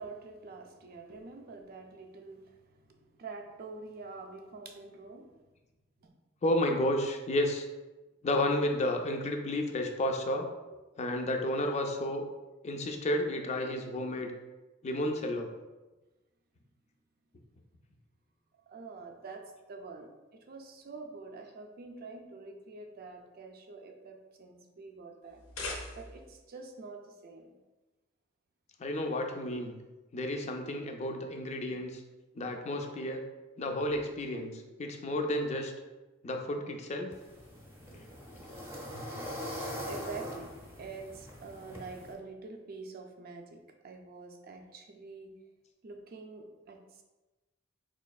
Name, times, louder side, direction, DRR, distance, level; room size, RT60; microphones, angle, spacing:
voice 1, 0.0-2.5 2.9-5.3 6.0-6.1 18.7-25.4 26.0-27.5 33.9-34.0 39.9-40.5 40.8-45.3 45.8-47.0, right 3 dB, 50° right, 3 dB, 0.4 m, -46 dB
voice 2, 6.4-7.7 8.2-10.5 11.0-12.2 12.6-14.3 14.8-15.5 28.8-29.7 30.1-32.0 32.3-33.2 33.6-35.7 36.2-37.1 37.9-38.1, left 1 dB, 35° left, 3 dB, 0.4 m, -31 dB
sound 1, 25.3-26.4, left 2 dB, 80° left, 0.6 m, -40 dB
sound 2, 37.1-42.1, equal, 10° right, 0.6 m, -42 dB
4.2 x 2.9 x 2.3 m, 1.1 s
head